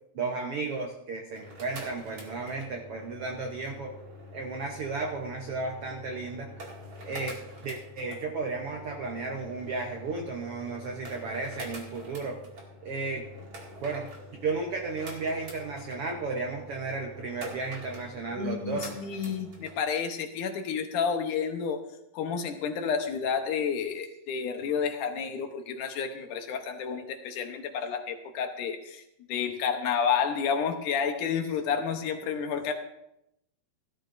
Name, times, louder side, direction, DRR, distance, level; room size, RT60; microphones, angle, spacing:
voice 1, 0.1-4.0 4.3-6.6 7.0-12.4 12.8-13.3 13.8-14.1 14.4-18.9, right 3 dB, 80° right, 2 dB, 1.3 m, -34 dB
sound 1, 1.2-19.8, equal, 40° right, 2.7 m, -46 dB
voice 2, 18.4-21.8 22.1-29.0 29.3-32.7, left 6 dB, 70° left, 5 dB, 2.3 m, -30 dB
16.5 x 12.5 x 2.6 m, 0.82 s
omnidirectional pair, 4.0 m